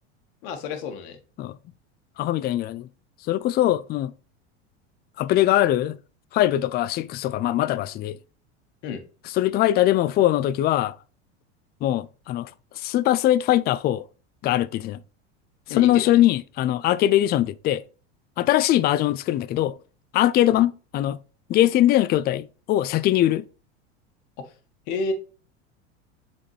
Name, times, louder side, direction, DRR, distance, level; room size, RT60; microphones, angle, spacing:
voice 1, 0.4-1.2 8.8-9.0 15.7-16.2 20.5-20.6 24.4-24.5 24.9-25.1, left 4 dB, 60° left, 1.5 m, -30 dB
voice 2, 2.2-2.9 3.3-4.1 5.2-6.0 6.3-8.2 9.3-10.9 11.8-12.5 12.8-14.0 14.4-15.0 15.7-17.8 18.4-19.7 20.1-21.2 21.5-23.4, left 13 dB, 30° left, 0.4 m, -21 dB
7.4 x 4.3 x 3.2 m
hypercardioid pair, 95°, 34 cm